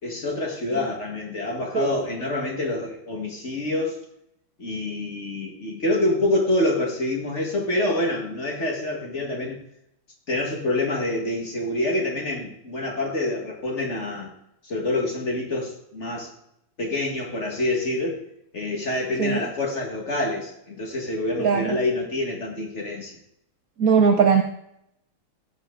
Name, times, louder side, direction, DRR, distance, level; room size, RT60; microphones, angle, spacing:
voice 1, 0.0-4.0 4.6-9.6 10.3-14.3 14.6-16.3 16.8-18.2 18.5-23.2, left 2 dB, 35° left, 0 dB, 2.0 m, -26 dB
voice 2, 21.4-21.8 23.8-24.4, right 6 dB, 60° right, 3 dB, 1.0 m, -19 dB
16.0 x 5.6 x 3.8 m, 0.78 s
omnidirectional pair, 2.2 m